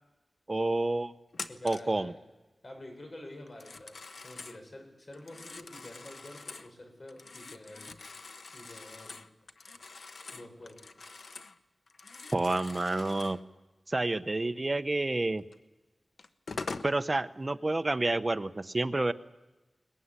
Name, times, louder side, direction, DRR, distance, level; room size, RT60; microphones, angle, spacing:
voice 1, 0.5-1.1 1.6-2.1 12.3-13.4 13.9-15.4 16.8-19.1, right 2 dB, 35° right, 10 dB, 0.9 m, -29 dB
Telephone, 1.3-2.0 3.5-4.6 5.1-6.7 7.1-11.6 11.9-13.4 15.5-15.6 16.2-16.9, left 4 dB, 80° left, 1.1 m, -44 dB
voice 2, 1.5-2.2 2.6-3.9 4.2-7.9 8.5-9.2 10.3-10.8, left 1 dB, 45° left, 3 dB, 6.9 m, -48 dB
22.5 x 20.5 x 9.8 m, 1.1 s
wide cardioid pair, 85°, 0 cm